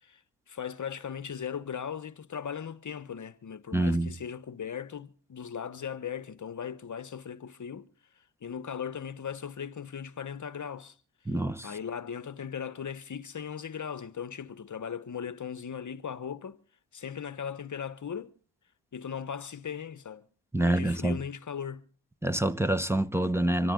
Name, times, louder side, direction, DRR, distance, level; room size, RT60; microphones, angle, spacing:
voice 1, 0.0-7.9 8.4-11.0 11.3-11.4 11.6-16.6 16.9-18.4 18.9-20.3 20.6-21.8, left 7 dB, 45° left, 1.1 m, -38 dB
voice 2, 3.7-4.1 11.3-11.7 20.5-21.2 22.2-23.7, right 1 dB, 5° right, 1.1 m, -26 dB
25.5 x 13.5 x 3.8 m
cardioid pair, 65°, 43 cm